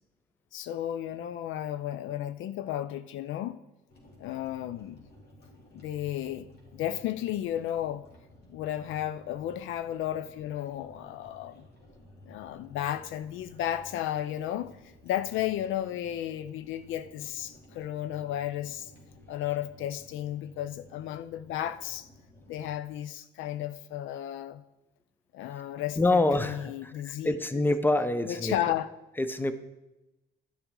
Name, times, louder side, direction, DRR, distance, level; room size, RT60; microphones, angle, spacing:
voice 1, 0.5-3.6 4.2-5.0 5.7-8.1 8.5-11.7 12.3-14.7 15.0-18.9 19.3-22.1 22.5-24.6 25.3-27.3 28.2-28.9, left 12 dB, 70° left, 0.5 m, -33 dB
sound 1, 3.9-22.7, left 1 dB, 50° left, 2.7 m, -55 dB
voice 2, 26.0-28.5 29.2-29.5, left 2 dB, 10° left, 0.7 m, -26 dB
12.0 x 6.9 x 3.7 m
supercardioid pair, 75°, 21 cm